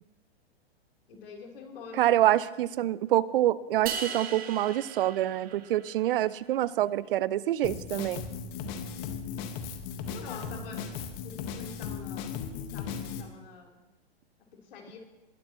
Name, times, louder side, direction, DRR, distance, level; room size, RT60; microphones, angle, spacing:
voice 1, 1.1-2.0 10.1-10.9 11.2-12.3 12.7-13.8 14.5-15.0, left 5 dB, 60° left, 0 dB, 3.9 m, -46 dB
voice 2, 2.0-8.2, right 13 dB, 60° right, 19 dB, 0.6 m, -26 dB
sound 1, 3.9-6.2, right 7 dB, 30° right, 1.3 m, -38 dB
Drum kit, 7.6-13.2, left 6 dB, 40° left, 1.6 m, -37 dB
21.0 x 12.0 x 3.1 m, 1.1 s
hypercardioid pair, 120°, 31 cm